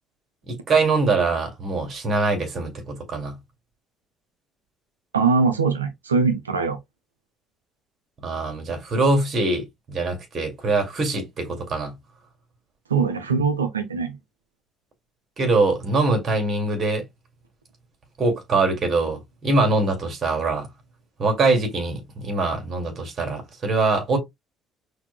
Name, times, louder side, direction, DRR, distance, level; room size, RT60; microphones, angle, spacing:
voice 1, 0.5-3.4 8.2-11.9 15.4-17.0 18.2-20.7 21.2-24.2, right 3 dB, 40° right, 2.1 m, -23 dB
voice 2, 5.1-6.8 12.9-14.2, right 4 dB, 90° right, 0.6 m, -22 dB
5.8 x 2.7 x 2.2 m
hypercardioid pair, 50°, 0 cm